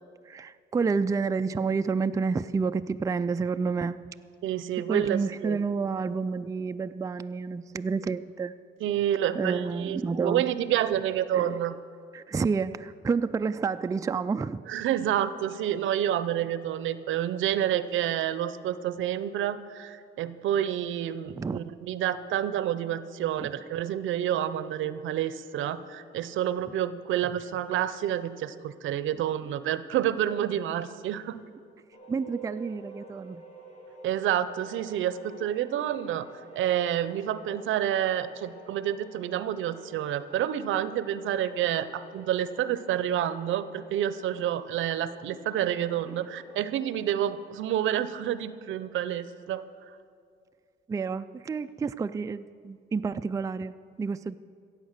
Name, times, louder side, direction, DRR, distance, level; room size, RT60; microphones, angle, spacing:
voice 1, 0.3-4.0 4.9-8.5 9.4-10.5 11.3-11.6 12.1-14.6 21.3-21.6 23.4-23.5 32.1-33.4 46.1-46.2 50.9-54.4, right 5 dB, 15° right, 11 dB, 0.3 m, -29 dB
voice 2, 4.4-5.6 8.8-11.7 14.7-31.4 34.0-36.3 36.5-49.6, right 11 dB, 80° right, 14 dB, 0.6 m, -29 dB
sound 1, 31.9-47.5, right 3 dB, 35° left, 2.7 m, -50 dB
15.5 x 8.0 x 6.6 m, 2.2 s
cardioid pair, 90°, 20 cm